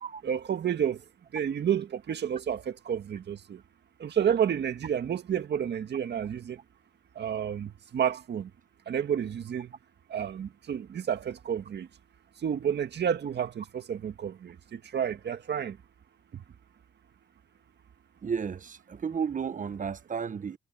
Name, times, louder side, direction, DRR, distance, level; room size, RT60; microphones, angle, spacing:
voice 1, 0.2-1.0 1.3-3.6 4.0-6.6 7.1-8.5 8.8-9.7 10.1-11.9 12.4-15.8 16.3-16.4, right 8 dB, 60° right, 1.8 m, -30 dB
voice 2, 18.2-20.6, right 6 dB, 40° right, 1.0 m, -33 dB
cardioid pair, 80°, 20 cm